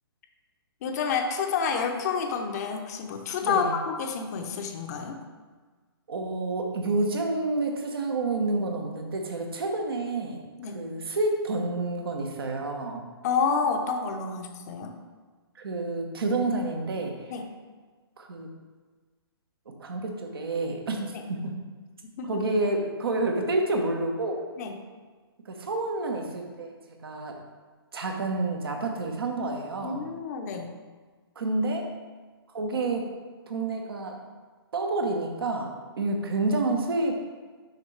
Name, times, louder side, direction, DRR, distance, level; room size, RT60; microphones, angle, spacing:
voice 1, 0.8-5.2 10.6-10.8 13.2-14.9 17.3-17.5 21.1-21.2 22.2-22.4 24.6-24.7 29.8-30.7, left 5 dB, 40° left, 4 dB, 0.7 m, -29 dB
voice 2, 3.4-3.7 6.1-10.4 10.7-13.0 15.6-17.3 18.2-18.5 19.8-21.5 22.3-24.4 25.5-26.7 27.0-27.3 27.9-30.0 31.4-31.9 32.5-33.1 33.5-34.2 34.7-37.2, right 2 dB, 65° right, 2 dB, 1.1 m, -29 dB
6.5 x 5.4 x 3.2 m, 1.4 s
figure-of-eight pair, 130°, 13 cm